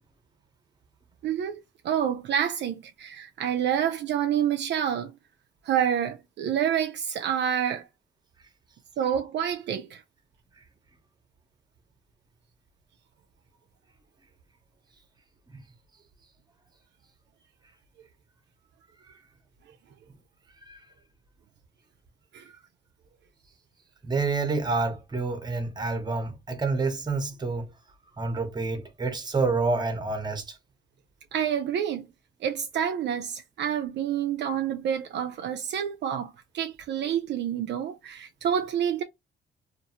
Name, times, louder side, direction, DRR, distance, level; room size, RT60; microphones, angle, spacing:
voice 1, 1.2-1.6 1.8-5.1 5.7-7.9 9.0-10.0 22.3-22.5 31.3-32.1 32.4-39.0, right 9 dB, 60° right, 0.4 m, -28 dB
voice 2, 24.0-27.7 28.2-30.6, right 3 dB, 20° right, 0.8 m, -28 dB
2.5 x 2.4 x 2.8 m
cardioid pair, 90°, 20 cm